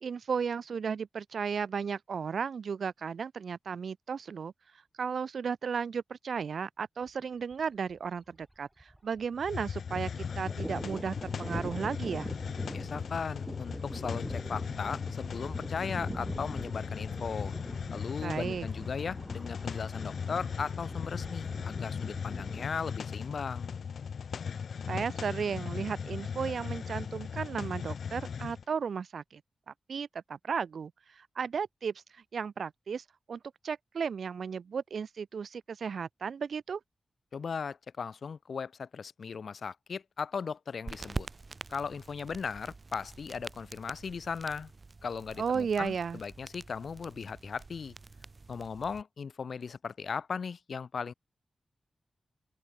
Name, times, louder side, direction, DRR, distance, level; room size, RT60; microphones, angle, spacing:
voice 1, 0.0-4.5 5.0-12.3 18.2-18.7 24.9-29.4 29.7-36.8 45.4-46.2, right 6 dB, 75° right, 1.2 m, -35 dB
Thunder, 7.1-7.2 7.5-7.6 7.9-9.4 9.7-22.7, right 1 dB, 10° right, 3.7 m, -43 dB
Hiss, 9.4-28.6, left 6 dB, 80° left, 1.2 m, -38 dB
voice 2, 12.7-17.6 17.9-23.7 37.3-41.3 41.7-44.7 45.0-48.0 48.5-51.1, left 5 dB, 65° left, 0.7 m, -37 dB
sound 1, 40.8-49.0, right 3 dB, 35° right, 1.0 m, -45 dB
open air
wide cardioid pair, 125°, 0 cm